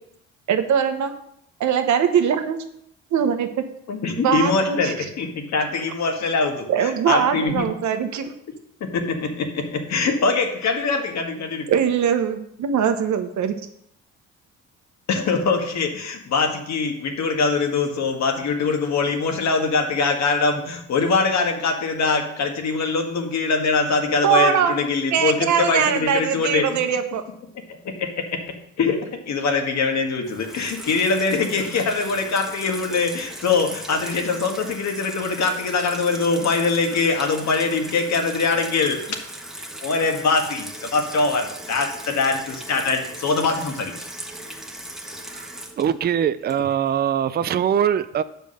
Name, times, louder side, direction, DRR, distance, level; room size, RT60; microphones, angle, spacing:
voice 1, 0.5-1.2 1.6-2.6 3.1-3.5 4.2-4.9 6.7-8.3 11.7-13.5 24.2-24.8 25.1-27.2, right 8 dB, 70° right, 1.1 m, -21 dB
voice 2, 3.9-7.7 8.8-11.7 15.1-26.7 27.7-29.0 29.2-39.2 39.8-44.0, left 4 dB, 65° left, 1.7 m, -23 dB
Water tap faucet / Sink (filling or washing), 30.2-47.0, right 1 dB, ahead, 1.4 m, -38 dB
voice 3, 45.8-48.2, right 9 dB, 35° right, 0.4 m, -22 dB
7.8 x 5.2 x 6.4 m
cardioid pair, 90°, 30 cm